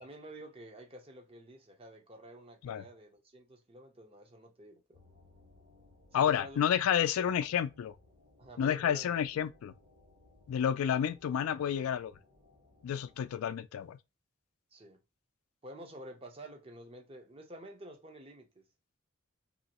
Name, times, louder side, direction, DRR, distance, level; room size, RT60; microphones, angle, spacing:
voice 1, 0.0-5.0 6.1-6.7 7.0-7.3 8.4-9.1 14.7-15.0 15.6-18.6, right 1 dB, 25° right, 0.6 m, -50 dB
sound 1, 4.9-13.4, left 2 dB, 45° right, 1.4 m, -63 dB
voice 2, 6.1-7.9 8.6-9.7 10.5-12.1 12.8-14.0, left 9 dB, 85° left, 0.3 m, -30 dB
3.0 x 2.7 x 2.9 m
head